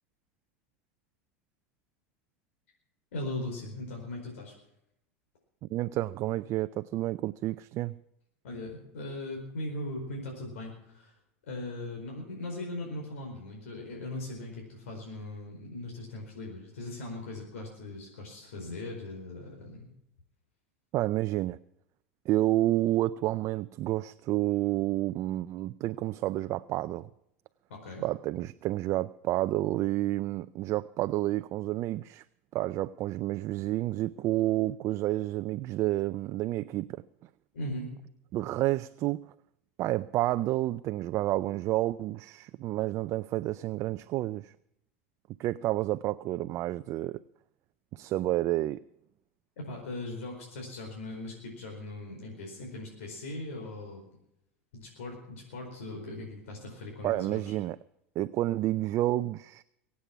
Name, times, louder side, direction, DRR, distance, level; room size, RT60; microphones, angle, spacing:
voice 1, 3.1-4.5 8.4-11.1 11.5-19.9 27.7-28.0 37.5-37.9 49.6-54.0 54.7-57.4, left 2 dB, 85° left, 0 dB, 4.7 m, -39 dB
voice 2, 5.7-8.0 20.9-21.6 22.3-27.1 28.0-32.2 32.5-37.0 38.3-39.2 39.8-44.5 45.4-47.2 47.9-48.8 57.0-57.8 58.2-59.6, right 15 dB, 45° right, 13 dB, 0.4 m, -30 dB
23.0 x 8.4 x 6.0 m, 0.80 s
hypercardioid pair, 105°, 7 cm